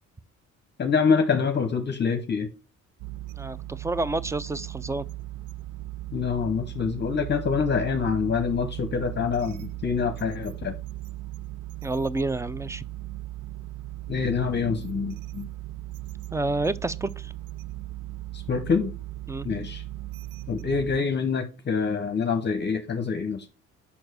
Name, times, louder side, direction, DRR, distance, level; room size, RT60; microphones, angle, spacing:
voice 1, 0.8-2.5 6.1-10.7 14.1-15.5 18.3-18.9 19.4-19.8 20.5-23.4, left 5 dB, 35° left, 0.8 m, -26 dB
sound 1, 3.0-21.0, right 16 dB, 80° right, 0.5 m, -37 dB
voice 2, 3.4-5.1 11.8-12.8 16.3-17.3 19.3-19.5, right 2 dB, 10° right, 0.3 m, -29 dB
5.6 x 4.6 x 6.2 m
cardioid pair, 95°, 30 cm